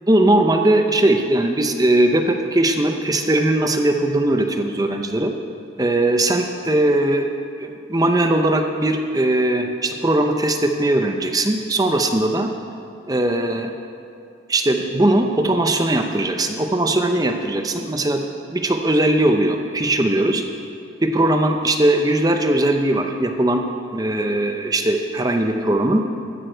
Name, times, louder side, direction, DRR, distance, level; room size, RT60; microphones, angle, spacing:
voice 1, 0.0-5.3 5.8-7.3 7.6-12.5 13.1-13.7 14.5-20.4 21.0-23.6 23.9-26.0, right 1 dB, 20° right, 5 dB, 0.7 m, -19 dB
14.5 x 9.3 x 4.6 m, 2.5 s
head